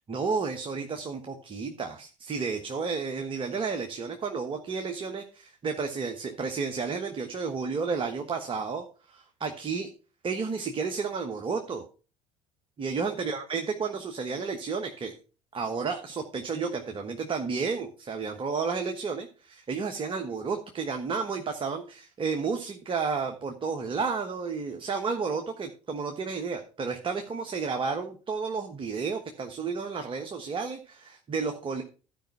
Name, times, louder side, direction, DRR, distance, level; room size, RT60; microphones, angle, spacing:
voice 1, 0.1-9.9 10.2-11.8 12.8-15.1 15.5-31.8, right 5 dB, 30° right, 5 dB, 1.2 m, -32 dB
12.5 x 5.2 x 5.6 m, 0.36 s
figure-of-eight pair, 60°, 17 cm